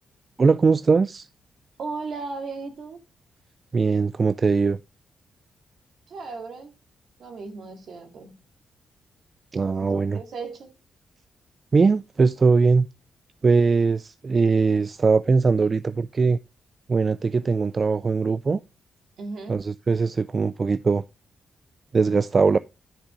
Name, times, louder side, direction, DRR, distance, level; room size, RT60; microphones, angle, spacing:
voice 1, 0.4-1.3 3.7-4.8 9.5-10.2 11.7-12.9 13.4-16.4 16.9-18.6 19.5-21.0 21.9-22.6, right 4 dB, 35° right, 0.3 m, -21 dB
voice 2, 1.8-3.0 6.1-6.7 7.2-8.4 9.8-10.7 19.2-19.6, right 4 dB, 65° right, 2.3 m, -36 dB
10.0 x 5.9 x 3.0 m
cardioid pair, 100°, 0 cm